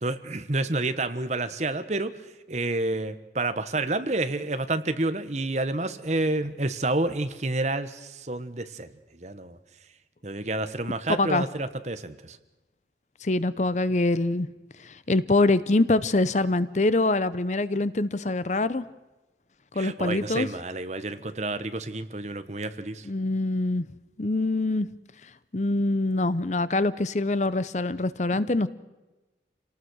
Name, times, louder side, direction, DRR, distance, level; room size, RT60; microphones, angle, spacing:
voice 1, 0.0-2.1 2.5-8.9 9.2-9.6 10.2-12.4 19.7-23.1, right 2 dB, 40° right, 11 dB, 1.2 m, -29 dB
voice 2, 13.2-14.5 14.8-18.8 19.7-20.5 23.1-23.9 24.2-24.9 25.5-28.7, left 2 dB, 40° left, 15 dB, 0.7 m, -24 dB
27.5 x 18.5 x 6.4 m, 1.1 s
head